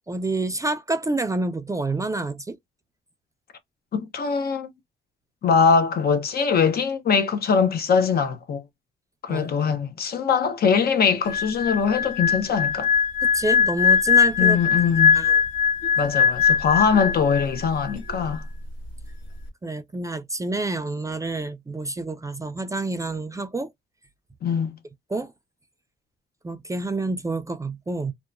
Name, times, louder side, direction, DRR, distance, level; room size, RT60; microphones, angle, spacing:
voice 1, 0.1-2.6 9.3-9.5 13.3-14.6 15.1-15.4 19.6-23.7 25.1-25.3 26.4-28.1, right 2 dB, 15° right, 0.4 m, -28 dB
voice 2, 3.9-4.7 5.4-8.6 9.2-12.9 14.4-15.3 16.0-18.4 24.4-24.8, left 6 dB, 50° left, 0.6 m, -22 dB
sound 1, 11.2-17.6 17.9-18.2, left 7 dB, 70° left, 1.3 m, -21 dB
2.7 x 2.2 x 2.4 m
cardioid pair, 90°, 20 cm